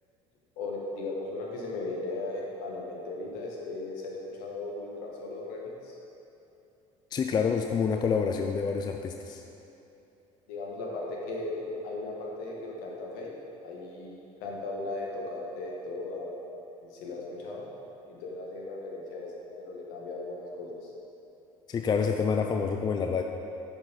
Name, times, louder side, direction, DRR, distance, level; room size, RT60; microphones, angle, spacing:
voice 1, 0.6-6.0 10.5-13.3 13.6-16.3 16.8-17.7 18.1-20.9, left 2 dB, 60° left, -2 dB, 1.4 m, -37 dB
voice 2, 7.1-9.4 21.7-23.2, left 6 dB, 25° left, 4 dB, 0.4 m, -27 dB
10.5 x 4.7 x 4.0 m, 2.9 s
figure-of-eight pair, 65°, 18 cm